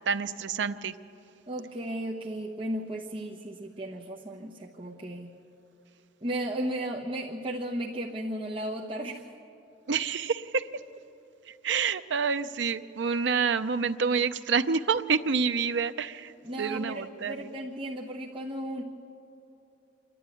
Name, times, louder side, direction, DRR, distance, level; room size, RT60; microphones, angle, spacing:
voice 1, 0.1-0.9 9.9-10.7 11.5-16.3 16.6-17.5, right 5 dB, 75° right, 11 dB, 0.6 m, -28 dB
voice 2, 1.5-5.3 6.2-9.3 16.4-18.8, right 1 dB, 30° right, -3 dB, 1.0 m, -35 dB
26.5 x 11.5 x 9.2 m, 2.9 s
head